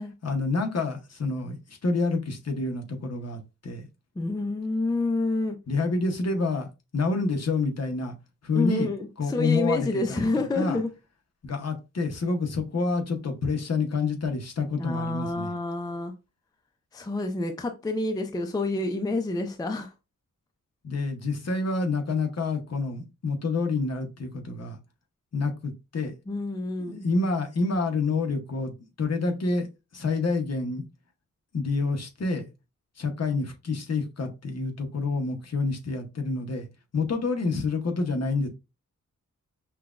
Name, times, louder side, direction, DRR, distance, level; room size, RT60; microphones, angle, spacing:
voice 1, 0.2-1.6 1.8-3.9 5.7-6.7 6.9-8.1 8.4-8.9 9.2-10.3 10.6-10.8 11.4-15.5 20.8-24.8 25.3-26.1 26.8-29.7 29.9-30.8 31.5-32.5 33.0-36.7 36.9-38.5, left 3 dB, 50° left, 0.8 m, -28 dB
voice 2, 4.2-5.6 8.5-10.9 14.8-16.1 16.9-19.9 26.3-27.0, left 2 dB, 10° left, 0.4 m, -28 dB
5.7 x 2.2 x 2.4 m
wide cardioid pair, 140°, 32 cm